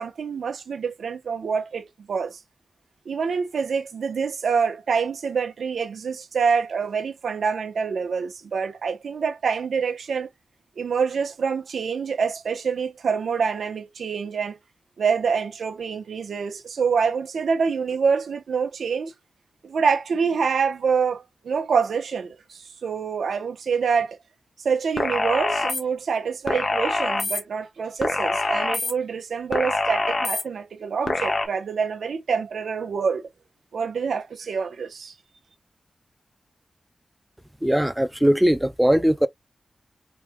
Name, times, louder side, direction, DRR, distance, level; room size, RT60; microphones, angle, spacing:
voice 1, 0.0-2.4 3.1-10.3 10.8-14.6 15.0-19.1 19.6-24.2 24.6-33.3 33.7-35.1, right 5 dB, 90° right, 0.8 m, -26 dB
sound 1, 25.0-25.8 26.5-27.4 28.0-28.9 29.5-30.4 31.1-31.5, left 3 dB, 50° left, 1.3 m, -25 dB
voice 2, 37.6-39.3, equal, 5° right, 0.5 m, -20 dB
4.6 x 3.3 x 2.2 m
cardioid pair, 70°, 0 cm